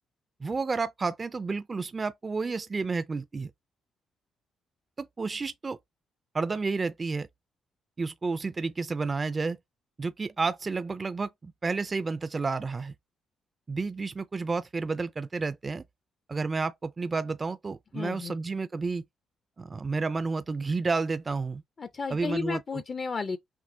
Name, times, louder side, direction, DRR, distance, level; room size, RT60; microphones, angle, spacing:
voice 1, 0.4-3.5 5.0-5.8 6.3-7.3 8.0-9.6 10.0-12.9 13.7-15.8 16.3-19.0 19.6-21.6 22.1-22.6, right 4 dB, 30° right, 0.3 m, -31 dB
voice 2, 17.9-18.4 21.8-23.4, left 5 dB, 40° left, 0.4 m, -33 dB
6.0 x 2.3 x 2.6 m
cardioid pair, 90°, 0 cm